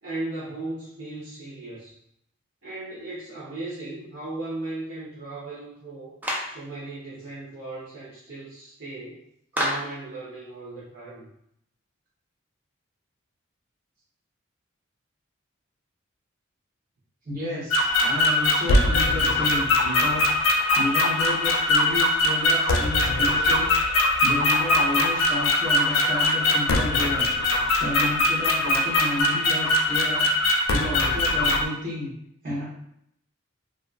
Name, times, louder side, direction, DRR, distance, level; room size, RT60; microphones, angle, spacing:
voice 1, 0.0-1.9 2.6-6.2 6.5-9.3 9.5-11.3, right 2 dB, 60° right, -10 dB, 0.7 m, -37 dB
Clapping, 6.2-6.6 9.6-10.0, equal, 10° right, 0.3 m, -27 dB
voice 2, 17.2-30.3 30.7-32.1 32.4-32.6, left 1 dB, 45° right, -7 dB, 1.0 m, -32 dB
sound 1, 17.7-31.7, left 2 dB, 80° left, 0.3 m, -22 dB
2.6 x 2.2 x 2.4 m, 0.73 s
head